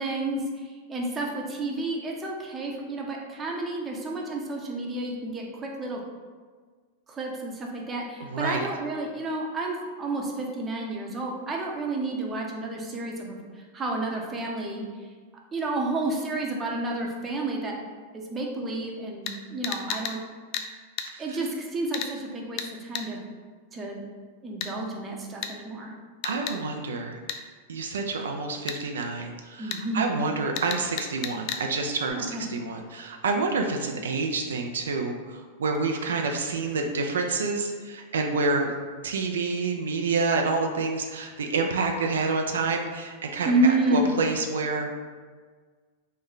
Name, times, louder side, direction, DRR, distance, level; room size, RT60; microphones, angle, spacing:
voice 1, 0.0-6.0 7.1-14.8 15.5-17.7 18.1-20.2 21.2-23.2 23.7-24.0 24.4-25.9 29.6-30.1 32.2-32.4 43.4-44.1, right 2 dB, 20° right, -1 dB, 0.6 m, -30 dB
voice 2, 8.2-8.7 21.1-21.4 26.2-27.2 27.7-38.7 39.0-45.0, right 3 dB, 85° right, 3 dB, 0.3 m, -28 dB
sound 1, 19.2-19.4 19.6-20.2 20.5-20.7 21.0-21.1 21.9-22.1 22.6-22.7 22.9-23.1 24.6-24.7 25.4-25.5 26.2-26.6 27.3-27.4 28.7-28.8 29.7-29.8 30.6-31.6 32.1-32.2, left 8 dB, 50° left, 0.3 m, -32 dB
3.1 x 2.1 x 3.8 m, 1.5 s
hypercardioid pair, 115°, 0 cm